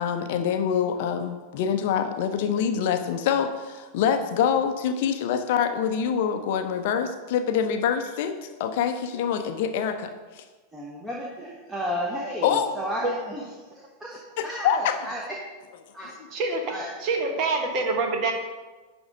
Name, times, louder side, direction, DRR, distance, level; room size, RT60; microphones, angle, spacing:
voice 1, 0.0-10.1 10.4-10.5 12.4-12.7 14.4-15.0, left 8 dB, 50° left, 8 dB, 0.6 m, -25 dB
voice 2, 10.7-13.4 13.7-15.4 15.9-16.1 16.7-16.9, equal, 10° right, -4 dB, 1.2 m, -33 dB
voice 3, 16.3-18.3, right 3 dB, 40° right, 3 dB, 1.2 m, -26 dB
10.5 x 3.6 x 5.2 m, 1.3 s
figure-of-eight pair, 90°, 0 cm